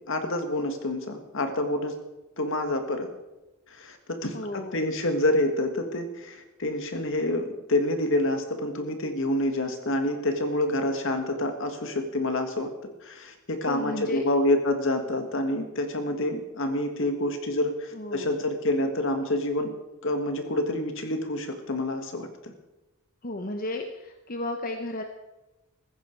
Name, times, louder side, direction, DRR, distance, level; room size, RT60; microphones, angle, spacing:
voice 1, 0.0-2.0 2.4-3.1 3.7-12.7 13.0-19.7 20.0-22.5, left 1 dB, 65° left, 6 dB, 2.0 m, -27 dB
voice 2, 4.2-4.8 13.6-14.2 17.9-18.4 23.2-25.0, left 2 dB, 40° left, 5 dB, 1.0 m, -34 dB
15.0 x 15.0 x 4.7 m, 1.0 s
head